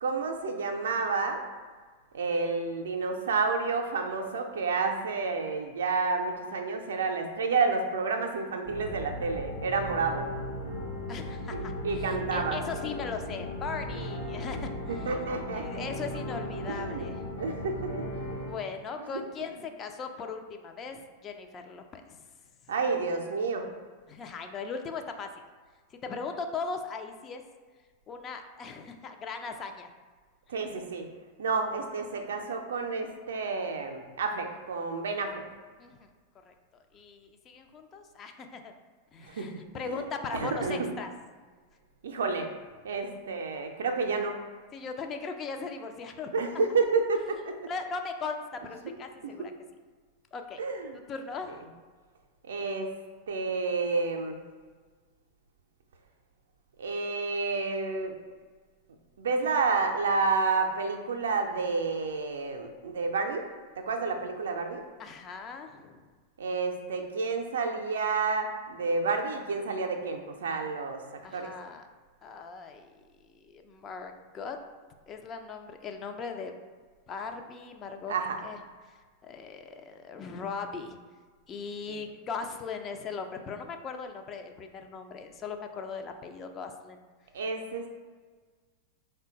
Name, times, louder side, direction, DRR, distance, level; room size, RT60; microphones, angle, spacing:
voice 1, 0.0-1.4 2.1-10.3 11.5-12.6 14.9-15.9 16.7-17.1 17.4-18.1 19.1-19.2 22.7-23.7 30.5-31.1 31.4-35.4 39.2-39.6 39.9-40.0 40.3-40.9 42.0-42.5 42.8-44.5 46.3-47.6 49.2-49.5 50.6-51.0 52.4-52.9 53.3-54.4 56.8-58.1 59.2-63.5 63.8-64.8 66.4-71.0 71.3-71.5 78.1-78.4 81.9-82.0 87.3-87.9, right 4 dB, 65° right, 4 dB, 0.4 m, -30 dB
sound 1, 8.7-18.4, left 1 dB, 60° left, 0.8 m, -38 dB
sound 2, 9.6-18.5, equal, 80° left, 1.0 m, -41 dB
voice 2, 11.1-14.8 15.5-17.2 18.5-22.2 24.1-25.3 25.9-27.4 28.1-29.9 35.8-36.1 36.5-36.6 36.9-38.7 39.1-41.1 44.7-46.3 47.7-49.5 50.3-50.6 51.1-51.7 65.0-66.1 71.2-71.8 72.2-72.9 73.4-74.6 75.1-76.6 77.1-78.1 78.4-78.6 78.9-81.0 81.5-87.0, left 5 dB, 30° left, 5 dB, 0.3 m, -39 dB
3.6 x 2.1 x 3.9 m, 1.5 s
figure-of-eight pair, 90°, 0 cm